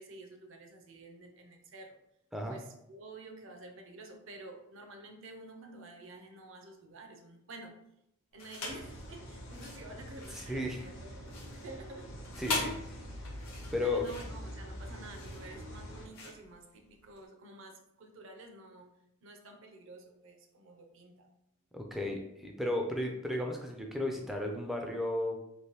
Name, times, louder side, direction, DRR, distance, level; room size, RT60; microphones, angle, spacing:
voice 1, 0.0-2.0 2.5-7.7 8.3-12.1 13.8-18.9 19.2-21.3, right 2 dB, 55° right, 4 dB, 0.5 m, -50 dB
sound 1, 8.4-8.9 9.4-17.3, left 3 dB, 85° left, 0.9 m, -41 dB
sound 2, 8.7-16.1, equal, 55° left, 0.6 m, -45 dB
voice 2, 10.3-10.9 12.4-13.0 13.7-14.0 21.7-25.4, left 1 dB, ahead, 1 dB, 0.3 m, -34 dB
3.1 x 2.5 x 2.9 m, 0.81 s
head